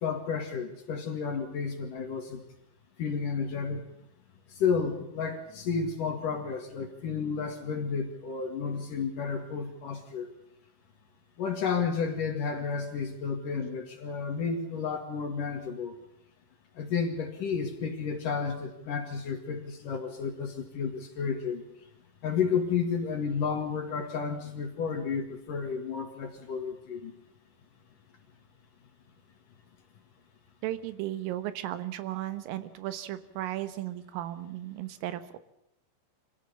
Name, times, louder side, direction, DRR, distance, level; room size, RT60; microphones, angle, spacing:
voice 1, 0.0-2.4 3.0-3.8 4.5-10.3 11.4-15.9 16.8-21.6 22.2-27.1, left 6 dB, 55° left, 5 dB, 2.9 m, -31 dB
voice 2, 30.6-35.4, right 13 dB, 85° right, 13 dB, 3.9 m, -35 dB
26.0 x 16.5 x 7.0 m, 0.84 s
omnidirectional pair, 5.8 m